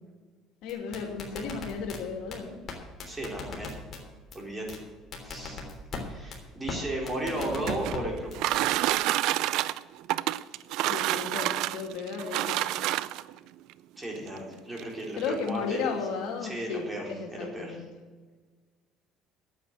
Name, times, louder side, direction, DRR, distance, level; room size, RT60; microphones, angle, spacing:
voice 1, 0.6-2.6 10.9-12.6 15.2-17.9, left 5 dB, 75° left, 3 dB, 2.6 m, -34 dB
sound 1, 0.7-2.0 2.3-2.4 2.7-2.8 3.0-4.0 4.3-4.4 4.7-4.8 5.1-6.0 6.3-6.4 6.7-6.8 7.1-8.0 8.3-8.6, left 5 dB, 40° left, 3.3 m, -37 dB
voice 2, 3.1-3.7 4.3-4.8 5.2-5.6 6.0-8.7 14.0-15.9 16.4-17.0 17.3-17.8, right 1 dB, 15° right, -1 dB, 4.1 m, -35 dB
sound 2, 7.2-13.4 14.3-14.4 14.8-14.9 15.2-15.6, right 15 dB, 70° right, 0.4 m, -28 dB
9.3 x 8.4 x 9.5 m, 1.4 s
cardioid pair, 110°, 0 cm